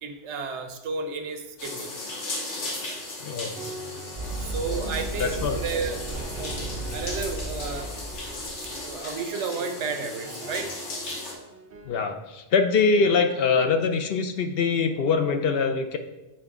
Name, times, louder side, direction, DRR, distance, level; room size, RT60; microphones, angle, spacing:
voice 1, 0.0-1.9 4.4-6.0 6.4-6.6 6.9-7.9 8.8-10.7 12.9-13.0 13.5-13.7, right 4 dB, 80° right, 6 dB, 1.0 m, -32 dB
sound 1, 1.6-11.3, left 2 dB, 80° left, 1.5 m, -36 dB
voice 2, 3.2-3.6 5.2-5.6 11.9-16.0, left 5 dB, 65° left, 7 dB, 0.7 m, -23 dB
sound 2, 3.5-12.0, right 2 dB, 55° right, 0.8 m, -43 dB
Run, 4.2-8.9, right 2 dB, 30° right, 1.7 m, -35 dB
7.5 x 4.5 x 3.6 m, 1.0 s
omnidirectional pair, 1.2 m